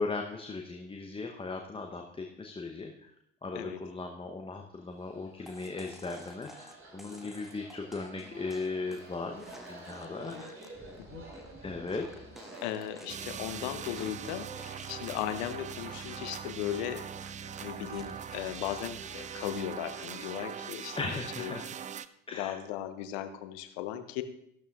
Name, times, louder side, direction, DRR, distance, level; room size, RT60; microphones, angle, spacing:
voice 1, 0.0-2.9 3.4-10.6 11.6-12.3 21.0-21.7 22.3-22.6, left 3 dB, 15° left, 3 dB, 0.9 m, -37 dB
sound 1, 4.9-20.7, right 2 dB, 35° right, 5.4 m, -51 dB
sound 2, 5.5-15.7 15.9-16.4 16.7-19.7 20.1-20.5, equal, ahead, 1.4 m, -53 dB
voice 2, 12.6-17.1 17.6-21.0 21.4-21.6 22.3-24.2, left 11 dB, 60° left, 10 dB, 1.0 m, -37 dB
sound 3, 13.1-22.1, right 8 dB, 20° right, 0.4 m, -41 dB
15.0 x 12.0 x 2.5 m, 0.73 s
figure-of-eight pair, 55°, 37 cm